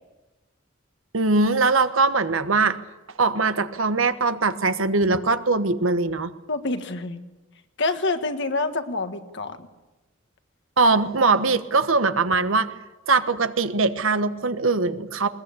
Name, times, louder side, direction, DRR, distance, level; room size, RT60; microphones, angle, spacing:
voice 1, 1.1-2.8 3.2-6.3 10.8-12.7 13.1-15.3, right 3 dB, 85° right, 11 dB, 1.3 m, -21 dB
voice 2, 6.5-7.2 7.8-9.7, left 3 dB, 65° left, 8 dB, 1.7 m, -27 dB
21.0 x 20.5 x 8.4 m, 1.1 s
head